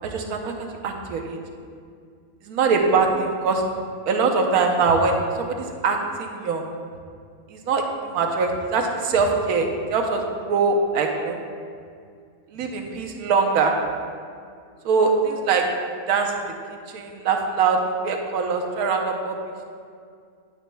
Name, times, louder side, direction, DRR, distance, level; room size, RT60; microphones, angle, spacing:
voice 1, 0.0-1.4 2.5-3.6 4.1-6.6 7.5-11.4 12.5-13.7 14.8-15.6 16.1-16.3 16.9-19.4, right 4 dB, 70° right, 3 dB, 1.3 m, -22 dB
11.0 x 9.1 x 2.3 m, 2.2 s
omnidirectional pair, 1.7 m